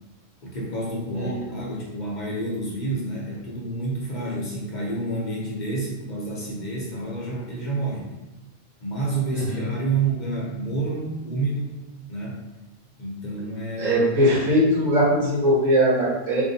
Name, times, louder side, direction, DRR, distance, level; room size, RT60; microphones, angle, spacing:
voice 1, 0.4-8.1 8.8-11.8 12.1-12.4 13.0-14.0, right 2 dB, 45° left, -4 dB, 0.7 m, -29 dB
voice 2, 9.3-9.6 13.8-16.4, equal, 90° right, -5 dB, 1.5 m, -20 dB
4.3 x 2.7 x 2.7 m, 1.0 s
omnidirectional pair, 1.3 m